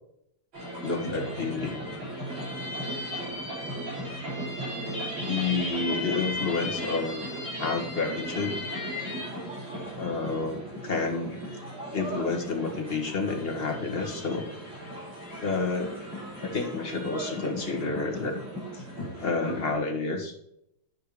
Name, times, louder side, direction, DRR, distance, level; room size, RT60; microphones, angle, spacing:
sound 1, 0.5-19.7, equal, 60° right, 5.2 m, -36 dB
voice 1, 0.8-1.8 5.2-7.2 7.6-8.6 10.0-11.4 11.9-14.5 15.4-16.0 16.4-18.4 18.7-20.4, left 4 dB, 30° left, 2 dB, 1.4 m, -30 dB
9.7 x 5.6 x 4.9 m, 0.77 s
omnidirectional pair, 2.4 m